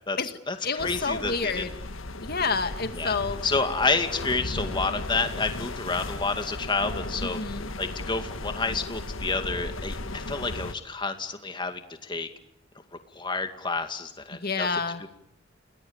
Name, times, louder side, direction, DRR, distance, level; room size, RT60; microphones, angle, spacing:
voice 1, 0.1-1.7 2.9-3.2 3.4-7.4 7.8-12.3 12.9-14.7 15.0-15.1, left 3 dB, 25° left, 7 dB, 2.2 m, -29 dB
voice 2, 0.6-1.7 2.2-3.4 7.2-7.7 14.3-15.0, left 4 dB, 50° left, 8 dB, 2.1 m, -29 dB
sound 1, 0.8-10.7, left 2 dB, 80° left, 1.6 m, -36 dB
29.5 x 20.0 x 8.9 m, 0.79 s
head